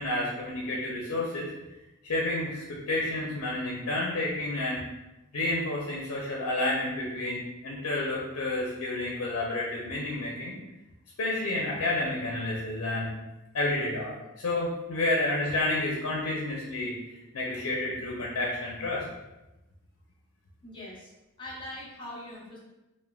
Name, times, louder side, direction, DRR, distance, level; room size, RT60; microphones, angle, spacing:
voice 1, 0.0-1.5 2.0-4.8 5.3-10.6 11.2-13.2 13.5-19.1, left 2 dB, 90° left, -3 dB, 0.5 m, -30 dB
voice 2, 20.6-21.1 21.4-22.6, left 1 dB, 25° left, -6 dB, 0.7 m, -42 dB
3.2 x 2.1 x 2.3 m, 1.0 s
head